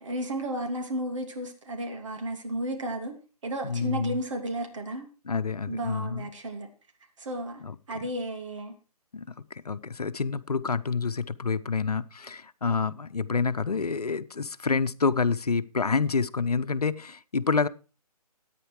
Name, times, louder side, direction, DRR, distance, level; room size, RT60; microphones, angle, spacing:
voice 1, 0.0-3.1 3.4-5.1 5.7-6.7 7.2-7.6 7.9-8.7, right 1 dB, 50° right, 3.0 m, -33 dB
voice 2, 3.6-4.2 5.2-6.3 7.6-7.7 8.0-8.1 9.1-17.7, left 5 dB, 75° left, 0.9 m, -28 dB
13.5 x 9.4 x 4.7 m
figure-of-eight pair, 150°, 20 cm